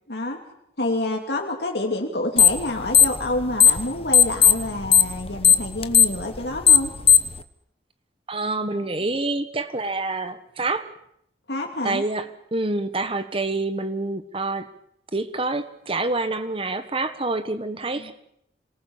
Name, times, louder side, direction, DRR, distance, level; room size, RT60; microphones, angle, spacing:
voice 1, 0.1-0.4 0.8-6.9 11.5-12.0 17.9-18.1, left 2 dB, 65° left, 1 dB, 2.9 m, -28 dB
sound 1, 2.4-2.6 2.9-3.8 4.1-7.4, left 8 dB, 35° left, 1.1 m, -14 dB
voice 2, 8.3-10.9 11.8-12.3 12.5-14.7 15.1-18.1, right 2 dB, 30° right, 11 dB, 1.4 m, -27 dB
26.5 x 19.0 x 7.3 m, 0.74 s
head